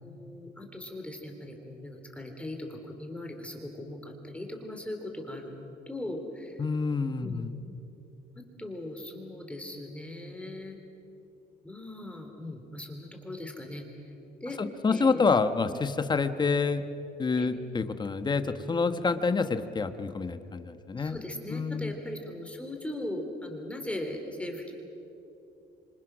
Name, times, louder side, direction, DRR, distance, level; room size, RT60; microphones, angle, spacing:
voice 1, 0.0-6.6 7.2-7.4 8.4-10.8 11.6-14.1 14.4-14.6 14.9-15.3 15.7-15.8 17.4-17.5 21.0-24.7, left 1 dB, 5° left, 3 dB, 3.6 m, -39 dB
voice 2, 6.6-7.5 14.6-16.8 17.2-21.2 21.5-21.9, left 4 dB, 25° left, 10 dB, 1.2 m, -27 dB
26.5 x 26.0 x 6.3 m, 2.9 s
cardioid pair, 110°, 17 cm